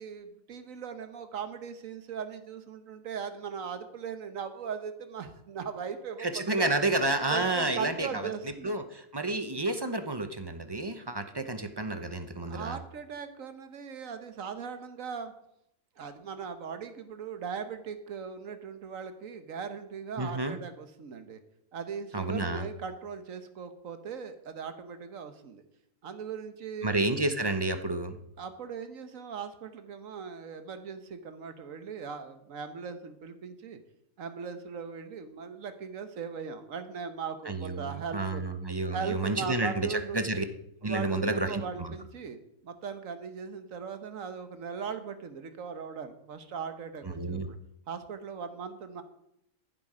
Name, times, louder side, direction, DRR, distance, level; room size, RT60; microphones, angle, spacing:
voice 1, 0.0-6.7 7.3-8.8 12.4-15.3 16.0-21.4 21.7-25.6 26.0-27.0 28.4-33.8 34.2-38.4 38.9-40.2 40.8-47.6 47.9-49.0, right 6 dB, 75° right, 9 dB, 1.5 m, -39 dB
voice 2, 6.2-8.3 8.6-12.8 20.2-20.6 22.1-22.7 26.8-28.1 37.5-40.4 40.8-41.9 47.2-47.5, right 2 dB, 25° right, 9 dB, 0.7 m, -30 dB
14.0 x 7.7 x 5.0 m, 0.77 s
omnidirectional pair, 1.4 m